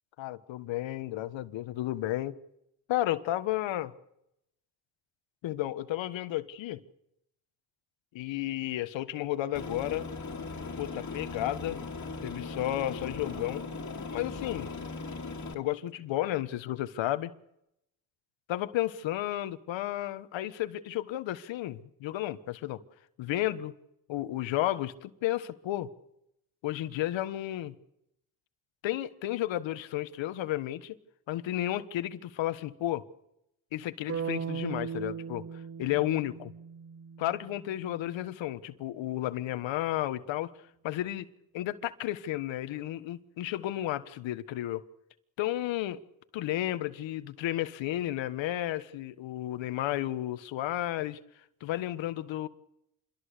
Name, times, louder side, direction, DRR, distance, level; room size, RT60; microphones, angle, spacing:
voice 1, 0.2-2.4 2.9-3.9 5.4-6.8 8.1-10.1 10.8-11.8 12.2-13.6 14.1-14.7 15.5-17.3 18.5-22.8 23.2-23.7 24.1-25.9 26.6-27.8 28.8-30.9 31.3-33.0 33.7-36.5 37.2-40.5 40.8-41.3 41.5-44.8 45.4-46.0 46.3-51.2 51.6-52.5, left 14 dB, 75° left, 1.5 m, -32 dB
Aircraft, 9.5-15.5, left 3 dB, 40° left, 2.8 m, -38 dB
sound 1, 34.1-38.1, right 6 dB, 30° right, 1.0 m, -38 dB
27.0 x 22.0 x 6.8 m
supercardioid pair, 65°, 46 cm